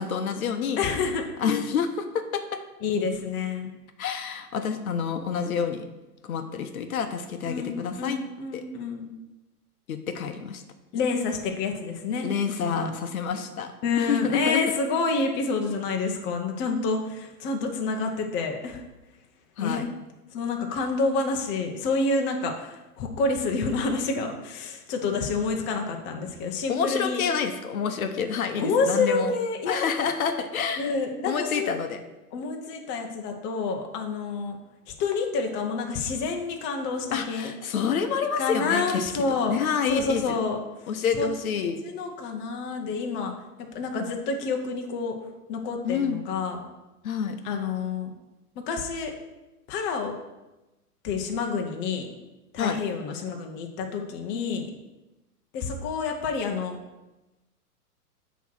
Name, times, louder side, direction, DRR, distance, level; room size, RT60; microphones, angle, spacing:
voice 1, 0.0-0.8 1.4-2.6 4.0-5.8 6.2-8.2 8.5-8.6 9.9-10.6 12.2-13.7 14.0-14.6 19.6-19.8 26.7-29.3 29.7-30.9 31.3-32.0 37.1-39.1 39.5-40.4 40.9-41.8 45.8-46.2 47.0-47.4 52.6-52.8, left 6 dB, 60° left, 7 dB, 0.8 m, -28 dB
voice 2, 0.8-1.2 2.8-3.7 7.4-9.2 10.9-12.3 12.6-12.9 13.8-18.8 19.6-19.9 20.3-27.2 28.6-29.8 30.0-30.1 30.8-31.7 32.3-34.6 34.9-37.5 38.4-39.6 39.9-40.6 41.1-41.3 41.8-43.3 43.7-45.2 45.5-46.6 47.4-48.1 48.6-49.1 49.7-50.1 51.0-52.1 52.5-54.7 55.5-56.8, left 4 dB, 25° left, 3 dB, 0.8 m, -28 dB
8.0 x 3.1 x 6.1 m, 1.0 s
hypercardioid pair, 120°, 47 cm